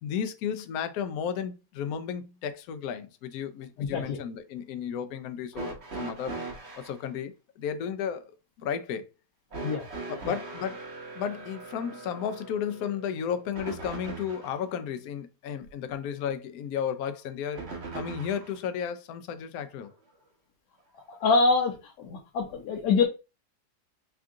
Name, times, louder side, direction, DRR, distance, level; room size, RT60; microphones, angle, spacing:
voice 1, 0.0-6.4 6.8-8.3 8.6-9.0 10.1-10.8 11.2-17.6 17.9-19.9, left 8 dB, 70° left, 1.0 m, -33 dB
voice 2, 3.8-4.2 9.6-9.8 21.1-23.1, left 4 dB, 90° left, 1.3 m, -25 dB
sound 1, 5.5-7.0 9.5-14.6 17.5-18.6 19.8-19.9 21.0-21.1, right 3 dB, 45° right, 1.1 m, -40 dB
3.6 x 2.4 x 3.5 m
omnidirectional pair, 1.7 m